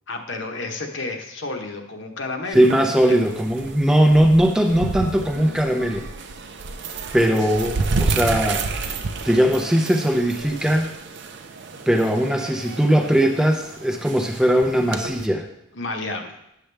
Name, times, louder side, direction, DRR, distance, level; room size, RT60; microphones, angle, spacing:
voice 1, 0.1-2.7 3.0-3.2 15.7-16.4, left 3 dB, 55° left, 3 dB, 1.0 m, -31 dB
voice 2, 2.5-6.1 7.1-9.0 9.2-10.9 11.9-15.4, equal, 5° right, 2 dB, 0.5 m, -19 dB
sound 1, 2.5-15.3, right 3 dB, 55° right, 0.5 m, -30 dB
9.9 x 6.8 x 3.4 m, 0.81 s
head